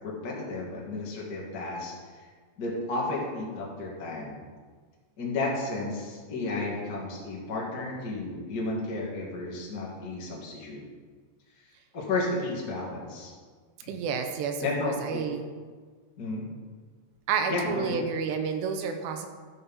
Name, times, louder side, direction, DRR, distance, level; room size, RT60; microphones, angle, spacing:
voice 1, 0.0-1.9 2.2-2.3 2.6-4.4 5.2-10.8 11.9-13.3 13.8-13.9 14.6-15.3 16.2-16.5 17.5-18.0, left 2 dB, 90° left, -4 dB, 0.8 m, -32 dB
voice 2, 13.9-15.5 17.3-19.3, right 6 dB, 85° right, 6 dB, 2.8 m, -30 dB
13.0 x 5.5 x 5.4 m, 1.5 s
omnidirectional pair, 5.3 m